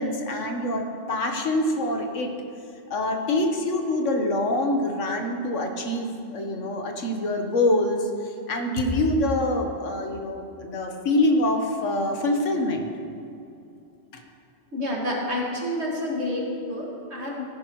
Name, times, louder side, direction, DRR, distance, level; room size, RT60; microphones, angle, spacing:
voice 1, 0.0-2.3 2.9-12.9 14.1-14.2, left 1 dB, 85° left, 3 dB, 1.5 m, -25 dB
voice 2, 14.7-17.5, left 1 dB, 65° right, -2 dB, 2.2 m, -29 dB
16.0 x 10.0 x 3.1 m, 2.6 s
omnidirectional pair, 1.2 m